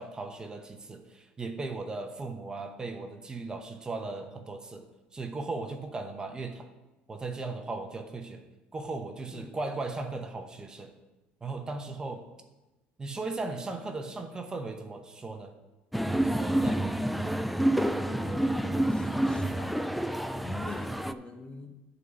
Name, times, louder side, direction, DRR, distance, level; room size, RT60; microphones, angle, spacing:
voice 1, 0.0-4.8 5.1-6.7 7.1-8.4 8.7-10.9 11.4-12.2 13.0-15.5 16.2-16.9, right 3 dB, 20° right, 5 dB, 0.9 m, -37 dB
sound 1, 15.9-21.1, right 1 dB, ahead, 0.3 m, -28 dB
voice 2, 18.2-19.9 20.4-21.8, left 3 dB, 20° left, 6 dB, 0.8 m, -43 dB
10.5 x 4.0 x 7.0 m, 1.1 s
cardioid pair, 135°, 4 cm